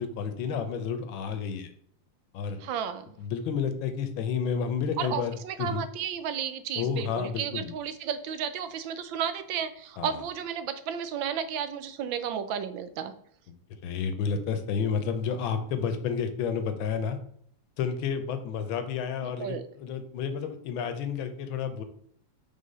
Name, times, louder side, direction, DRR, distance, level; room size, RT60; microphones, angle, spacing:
voice 1, 0.0-1.7 2.3-2.6 3.2-5.8 6.8-7.7 10.0-10.2 13.8-17.2 17.8-21.8, left 6 dB, 85° left, 8 dB, 1.5 m, -30 dB
voice 2, 2.6-3.2 5.0-13.1 19.2-19.7, right 8 dB, 80° right, 11 dB, 1.4 m, -33 dB
5.5 x 3.4 x 5.4 m, 0.65 s
omnidirectional pair, 2.1 m